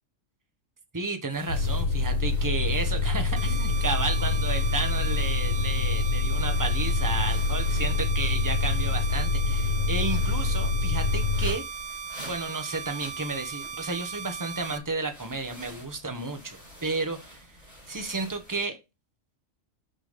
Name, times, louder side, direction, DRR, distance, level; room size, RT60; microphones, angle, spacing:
voice 1, 0.9-11.6 12.2-17.5 17.9-18.8, right 3 dB, 15° right, 1.2 m, -32 dB
sound 1, 1.3-18.6, equal, 30° left, 4.6 m, -48 dB
sound 2, 1.5-11.5, left 3 dB, 85° left, 1.6 m, -26 dB
sound 3, 3.4-14.8, right 6 dB, 85° right, 1.4 m, -38 dB
6.4 x 6.1 x 5.2 m
omnidirectional pair, 1.3 m